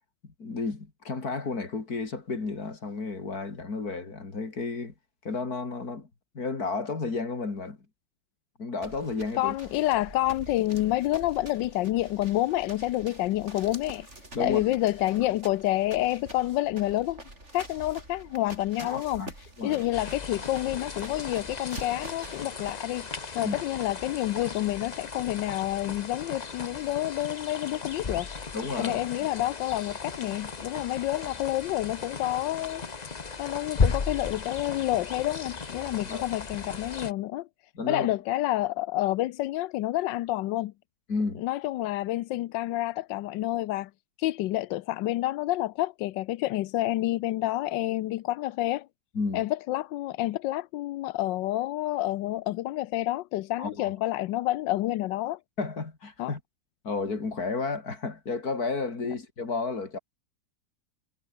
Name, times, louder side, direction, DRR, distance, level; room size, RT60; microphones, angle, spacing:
voice 1, 0.4-4.9 5.2-6.1 6.3-7.8 8.6-9.6 14.3-14.7 18.8-19.3 19.6-19.8 23.4-23.6 28.5-29.0 36.0-36.2 37.8-38.1 41.1-41.4 49.1-49.4 53.6-53.9 55.6-56.4 56.8-60.0, left 4 dB, 55° left, 3.9 m, -32 dB
sound 1, 8.8-22.7, right 1 dB, 35° right, 6.9 m, -46 dB
voice 2, 9.4-14.1 14.4-17.2 17.5-19.3 19.6-23.1 23.3-28.3 28.8-32.8 33.4-37.5 37.9-40.7 41.4-43.9 44.2-48.9 49.3-55.4 56.2-56.3 59.0-59.1, left 16 dB, 90° left, 1.3 m, -28 dB
sound 2, 19.9-37.1, left 5 dB, 30° left, 0.9 m, -35 dB
omnidirectional pair, 2.0 m